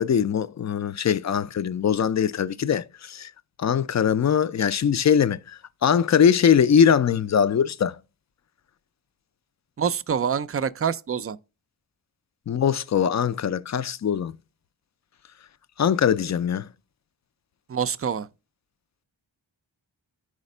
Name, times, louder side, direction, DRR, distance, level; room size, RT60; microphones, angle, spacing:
voice 1, 0.0-3.3 3.6-5.4 5.8-7.9 12.5-14.3 15.8-16.7, left 8 dB, 40° left, 0.4 m, -21 dB
voice 2, 9.8-11.4 17.7-18.3, right 7 dB, 30° right, 0.3 m, -26 dB
5.0 x 4.1 x 5.3 m
cardioid pair, 50°, 48 cm